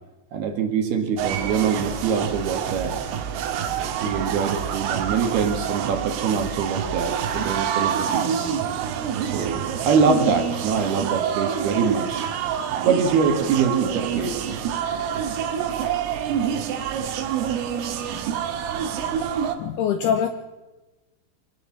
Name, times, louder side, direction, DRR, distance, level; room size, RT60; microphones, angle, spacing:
voice 1, 0.3-3.0 4.0-8.5 9.2-12.3 12.8-14.5, right 5 dB, 60° right, 5 dB, 3.3 m, -24 dB
sound 1, 1.2-19.6, right 8 dB, 80° right, 4.1 m, -27 dB
voice 2, 19.6-20.3, left 8 dB, 75° left, 8 dB, 2.4 m, -23 dB
25.0 x 17.5 x 7.4 m, 1.1 s
omnidirectional pair, 5.9 m